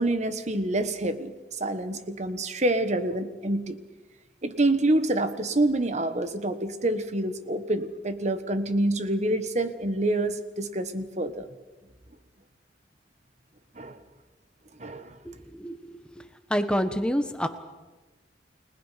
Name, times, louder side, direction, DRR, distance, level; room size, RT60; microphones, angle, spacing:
voice 1, 0.0-1.3 1.6-3.8 4.4-11.4 13.8-14.0 14.8-15.1, right 1 dB, 40° right, 10 dB, 1.4 m, -27 dB
voice 2, 15.2-15.8 16.5-17.5, equal, 5° left, 8 dB, 1.3 m, -27 dB
29.5 x 20.0 x 5.9 m, 1.2 s
head